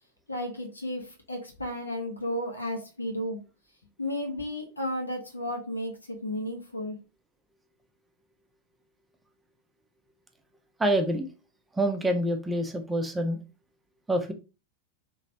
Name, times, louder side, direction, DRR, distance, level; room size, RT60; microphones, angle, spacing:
voice 1, 0.3-3.4 4.0-7.0, left 1 dB, 80° left, 2 dB, 0.9 m, -33 dB
voice 2, 10.8-11.3 11.7-13.4 14.1-14.3, right 1 dB, 10° right, 5 dB, 0.5 m, -26 dB
3.1 x 3.0 x 2.7 m, 0.31 s
figure-of-eight pair, 90°, 0 cm